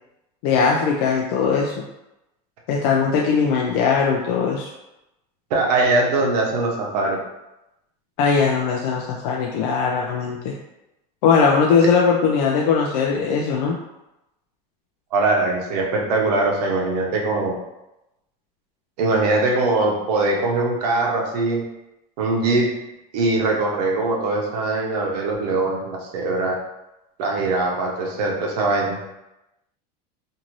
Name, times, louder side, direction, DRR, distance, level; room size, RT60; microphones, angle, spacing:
voice 1, 0.4-1.7 2.7-4.7 8.2-10.5 11.2-13.8, left 5 dB, 60° left, -1 dB, 0.4 m, -20 dB
voice 2, 5.5-7.2 15.1-17.5 19.0-21.6 22.2-22.7 23.1-26.6 27.2-29.1, right 2 dB, 80° right, -1 dB, 0.8 m, -21 dB
2.6 x 2.5 x 3.0 m, 0.93 s
supercardioid pair, 170°, 20 cm